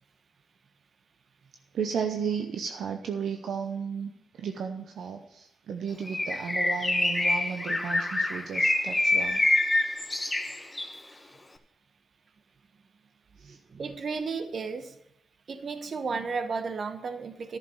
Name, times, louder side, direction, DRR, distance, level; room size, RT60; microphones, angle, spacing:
voice 1, 1.7-4.1 4.4-9.4 13.4-13.6, right 6 dB, 75° right, 5 dB, 0.7 m, -34 dB
Bird, 6.1-11.0, left 2 dB, 20° left, 1.2 m, -26 dB
voice 2, 13.4-15.0 15.5-17.6, right 4 dB, 60° right, 10 dB, 1.0 m, -33 dB
10.5 x 6.7 x 6.7 m, 0.79 s
supercardioid pair, 50°, 0 cm